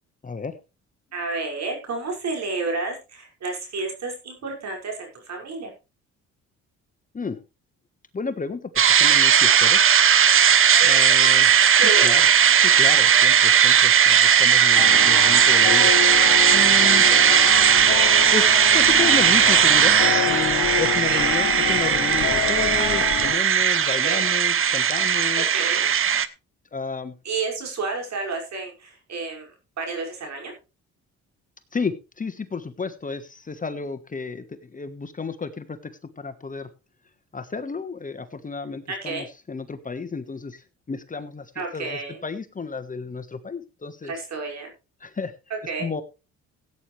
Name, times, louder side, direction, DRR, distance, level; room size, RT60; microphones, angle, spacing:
voice 1, 0.2-0.6 7.1-7.4 8.1-9.9 10.8-11.5 12.0-12.3 12.6-15.9 16.5-17.0 18.3-18.5 18.7-20.0 20.2-25.4 26.7-27.1 31.7-36.7 37.3-40.6 40.9-44.1 45.0-45.3 45.8-46.0, left 4 dB, 25° left, 10 dB, 1.3 m, -32 dB
voice 2, 1.1-5.7 10.8-12.3 17.0-17.4 21.0-21.2 24.0-24.2 25.4-25.9 27.2-29.5 29.8-30.5 38.9-39.3 41.6-42.2 44.0-44.7 45.5-45.9, right 3 dB, 60° right, 1 dB, 5.8 m, -31 dB
sound 1, 8.8-26.3, right 8 dB, 45° right, 0.9 m, -17 dB
sound 2, 14.8-23.4, left 12 dB, 75° left, 1.2 m, -28 dB
16.5 x 9.1 x 3.3 m, 0.30 s
cardioid pair, 90°, 30 cm